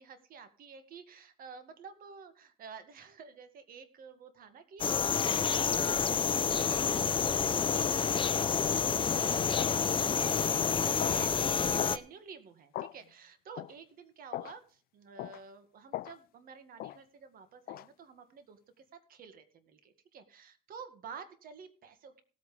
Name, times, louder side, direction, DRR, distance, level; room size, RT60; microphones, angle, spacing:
voice 1, 0.0-10.3 10.8-22.2, right 6 dB, 60° right, 10 dB, 1.9 m, -51 dB
sound 1, 4.8-12.0, left 6 dB, 30° left, 0.7 m, -29 dB
sound 2, 8.8-9.0 9.6-9.8 10.3-10.6 11.0-11.2 11.8-12.0 12.7-13.0 13.6-13.7 14.3-14.6 15.2-15.4 15.9-16.2 16.8-17.0 17.7-17.9, left 15 dB, 60° left, 0.4 m, -39 dB
18.0 x 8.6 x 3.3 m, 0.39 s
cardioid pair, 110°, 17 cm